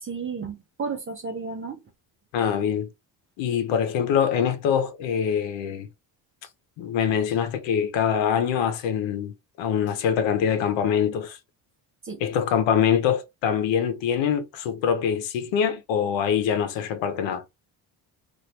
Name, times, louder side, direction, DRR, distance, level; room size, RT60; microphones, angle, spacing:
voice 1, 0.0-1.8 12.0-12.2, right 5 dB, 30° right, 0.7 m, -33 dB
voice 2, 2.3-2.9 3.4-5.9 6.8-11.4 12.2-17.4, left 8 dB, 80° left, 0.9 m, -24 dB
3.1 x 2.6 x 2.8 m
cardioid pair, 125°, 44 cm